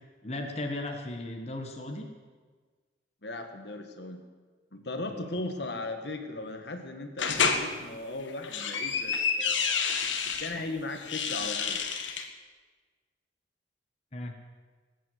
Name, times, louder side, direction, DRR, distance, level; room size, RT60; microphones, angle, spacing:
voice 1, 0.2-2.1 14.1-14.3, left 1 dB, 35° left, 2 dB, 1.3 m, -36 dB
voice 2, 3.2-4.2 4.7-9.1 9.4-9.6 10.4-11.8, left 2 dB, 65° left, 6 dB, 1.6 m, -37 dB
sound 1, 7.2-7.6 8.3-10.5 11.0-12.3, left 6 dB, 90° left, 1.5 m, -29 dB
19.0 x 9.2 x 7.8 m, 1.4 s
head